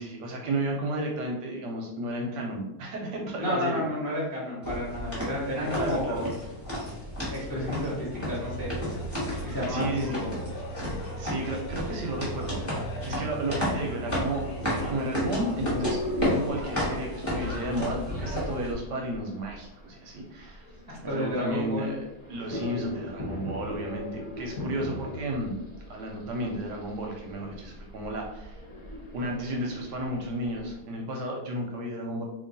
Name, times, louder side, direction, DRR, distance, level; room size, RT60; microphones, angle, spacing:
voice 1, 0.0-3.8 5.6-6.2 9.7-10.4 11.2-14.5 14.7-25.5 25.9-28.6 29.1-32.2, right 1 dB, 75° right, 0 dB, 1.1 m, -33 dB
voice 2, 3.4-6.4 7.3-8.7 9.4-10.3 20.9-21.9, left 1 dB, 25° left, -5 dB, 0.4 m, -31 dB
sound 1, 4.6-18.7, left 1 dB, 10° left, 1.1 m, -32 dB
sound 2, 8.2-14.9, right 4 dB, 80° left, 1.4 m, -40 dB
sound 3, 15.7-30.8, left 1 dB, 45° left, 1.1 m, -40 dB
2.9 x 2.6 x 3.8 m, 0.92 s
omnidirectional pair, 2.1 m